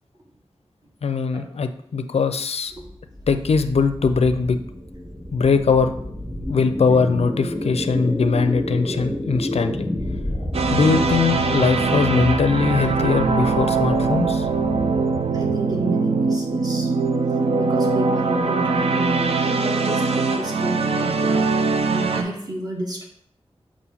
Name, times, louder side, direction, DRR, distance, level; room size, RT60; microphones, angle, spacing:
voice 1, 1.0-2.7 3.3-4.6 5.3-5.9 6.4-9.9 10.7-14.5, left 5 dB, 75° left, 10 dB, 0.4 m, -21 dB
sound 1, 2.7-15.9, left 1 dB, ahead, 1.2 m, -30 dB
sound 2, 10.5-22.2, right 4 dB, 70° right, 0.5 m, -22 dB
voice 2, 15.3-16.9 17.6-21.5 21.8-23.0, right 1 dB, 40° right, -1 dB, 1.4 m, -31 dB
7.0 x 2.6 x 5.5 m, 0.69 s
wide cardioid pair, 90°, 11 cm